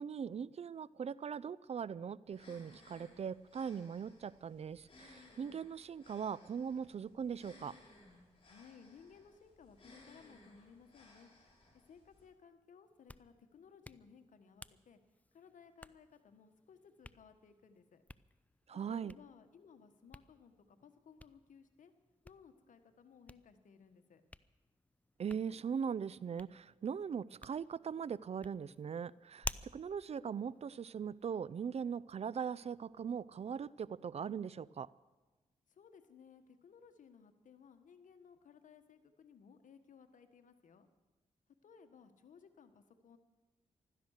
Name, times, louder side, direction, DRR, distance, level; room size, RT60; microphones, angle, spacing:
voice 1, 0.0-7.7 18.7-19.1 25.2-34.9, right 7 dB, 55° right, 21 dB, 0.4 m, -40 dB
sound 1, 2.3-12.2, left 2 dB, 45° left, 6.1 m, -62 dB
voice 2, 8.4-11.3 11.9-15.0 15.3-18.0 18.9-21.9 22.2-24.2 35.7-40.9 41.6-43.2, left 6 dB, 75° left, 8 dB, 1.4 m, -60 dB
Hands, 12.8-31.4, left 1 dB, 10° left, 0.5 m, -54 dB
15.5 x 13.0 x 6.5 m, 1.2 s
cardioid pair, 55°, 13 cm